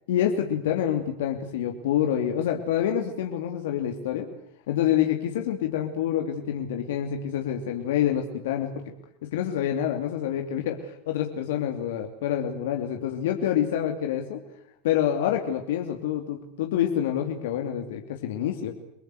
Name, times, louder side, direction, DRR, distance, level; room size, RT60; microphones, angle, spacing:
voice 1, 0.1-4.3 4.7-8.8 9.3-10.8 11.1-14.4 14.8-18.7, left 10 dB, 80° left, 3 dB, 3.0 m, -27 dB
29.5 x 19.0 x 7.9 m, 0.80 s
hypercardioid pair, 105°, 0 cm